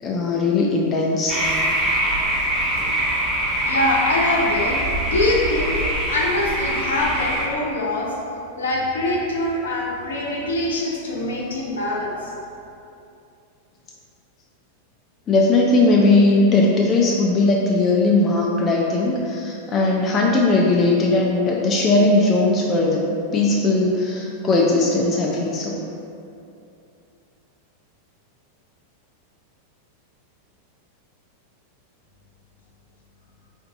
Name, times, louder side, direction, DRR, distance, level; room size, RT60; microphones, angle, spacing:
voice 1, 0.0-1.4 15.3-23.1 23.3-25.8, left 2 dB, 25° left, -2 dB, 0.3 m, -18 dB
sound 1, 1.3-7.5, right 1 dB, 15° right, 1.1 m, -23 dB
voice 2, 3.6-4.8 5.0-5.7 6.1-8.2 8.5-12.3, left 1 dB, 65° left, -3 dB, 0.6 m, -23 dB
4.2 x 2.6 x 2.7 m, 2.6 s
figure-of-eight pair, 90°, 0 cm